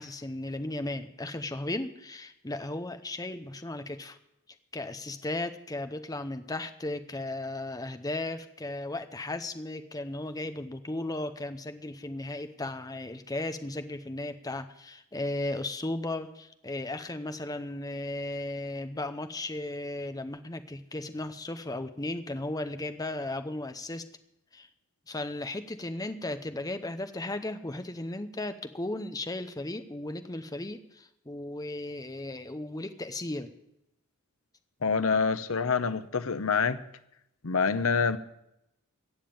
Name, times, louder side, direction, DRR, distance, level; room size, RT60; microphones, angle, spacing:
voice 1, 0.0-4.2 4.7-24.0 24.5-24.7 25.1-33.5, left 2 dB, 15° left, 9 dB, 0.8 m, -35 dB
voice 2, 34.8-36.8 37.4-38.2, left 5 dB, 65° left, 13 dB, 0.8 m, -26 dB
15.5 x 7.3 x 8.7 m, 0.83 s
head